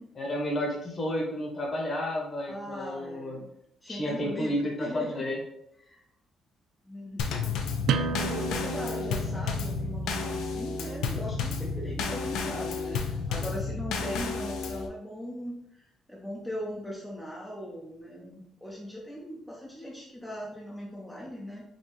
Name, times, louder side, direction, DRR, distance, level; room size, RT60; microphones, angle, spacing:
voice 1, 0.1-3.4 3.9-5.4, left 1 dB, 30° left, 0 dB, 1.1 m, -31 dB
voice 2, 2.5-3.5 3.8-5.2 5.8-6.0 6.9-7.5 7.9-21.6, equal, 5° left, -4 dB, 0.6 m, -39 dB
Drum kit / Snare drum / Bass drum, 7.2-14.9, left 5 dB, 90° left, 0.5 m, -32 dB
sound 1, 7.9-13.3, right 6 dB, 70° right, 0.3 m, -35 dB
5.3 x 2.8 x 3.1 m, 0.79 s
cardioid pair, 155°, 0 cm